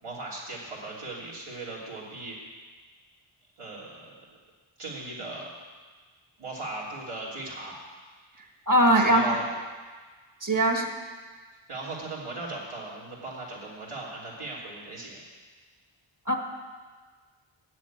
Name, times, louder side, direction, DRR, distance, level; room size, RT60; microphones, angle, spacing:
voice 1, 0.0-2.4 3.6-4.1 4.8-5.5 6.4-7.8 8.9-9.5 11.7-15.2, right 2 dB, 85° right, -5 dB, 3.0 m, -38 dB
voice 2, 8.7-9.4 10.4-10.9 16.3-16.4, right 1 dB, 40° right, 3 dB, 1.6 m, -21 dB
8.4 x 7.6 x 8.7 m, 1.4 s
wide cardioid pair, 65°, 50 cm